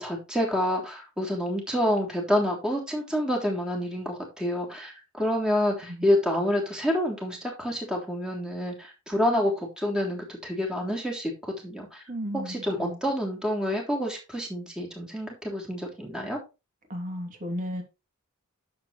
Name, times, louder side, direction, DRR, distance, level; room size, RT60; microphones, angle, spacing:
voice 1, 0.0-11.3 11.6-12.0 12.5-16.4, left 1 dB, 5° right, 3.2 m, -28 dB
voice 2, 12.1-13.0 16.9-17.8, equal, 35° right, 3.0 m, -34 dB
10.5 x 7.5 x 3.3 m
head